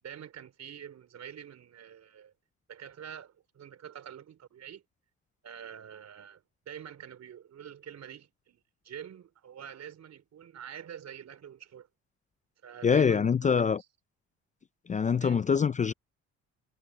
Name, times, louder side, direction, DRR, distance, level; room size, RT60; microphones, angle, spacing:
voice 1, 0.0-2.3 2.7-4.8 5.4-11.9 12.6-13.6 15.2-15.4, right 9 dB, 60° right, 4.4 m, -46 dB
voice 2, 12.8-13.8 14.9-15.9, left 6 dB, 25° left, 0.4 m, -24 dB
cardioid pair, 90°, 30 cm